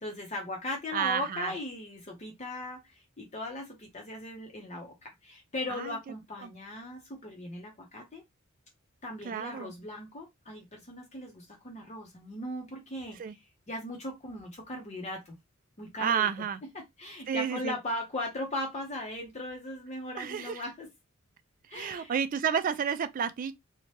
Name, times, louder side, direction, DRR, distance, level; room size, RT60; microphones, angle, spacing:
voice 1, 0.0-8.2 9.0-13.2 13.7-15.3 15.8-16.3 16.7-20.9 21.7-22.1, left 1 dB, 35° left, 0.7 m, -38 dB
voice 2, 0.9-1.5 5.7-6.0 6.4-6.5 9.2-9.7 13.2-13.3 16.0-16.6 17.3-17.8 20.2-20.6 21.7-23.5, right 7 dB, 40° right, 0.3 m, -31 dB
2.8 x 2.1 x 3.1 m
head